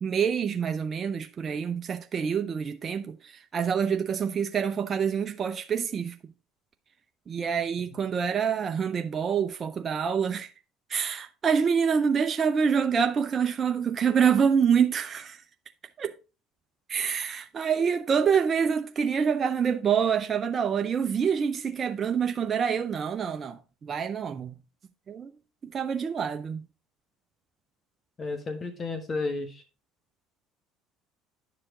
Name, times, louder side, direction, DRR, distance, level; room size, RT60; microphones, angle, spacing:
voice 1, 0.0-6.2 7.3-10.5 10.9-15.4 16.0-16.1 16.9-24.5 25.1-25.3 25.7-26.6, right 7 dB, 35° right, 0.6 m, -26 dB
voice 2, 28.2-29.6, left 3 dB, 35° left, 1.5 m, -33 dB
9.9 x 4.9 x 3.7 m
supercardioid pair, 85°, 0 cm